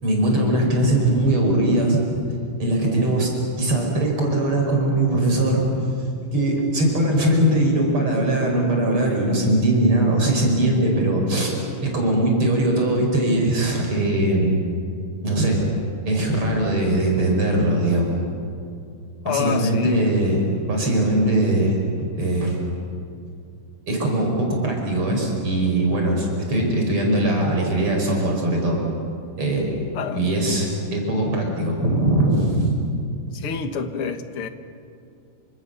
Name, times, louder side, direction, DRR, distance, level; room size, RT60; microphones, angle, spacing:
voice 1, 0.0-2.0 2.6-3.3 3.6-5.6 6.3-11.5 11.8-14.6 15.2-15.6 16.1-18.2 19.2-20.4 20.7-22.6 23.9-28.8 29.4-29.7 30.1-32.7, right 1 dB, 80° right, 0 dB, 6.3 m, -20 dB
voice 2, 19.2-20.0 29.9-30.5 33.3-34.5, left 7 dB, 80° left, 8 dB, 2.4 m, -27 dB
29.0 x 26.5 x 7.1 m, 2.5 s
omnidirectional pair, 2.4 m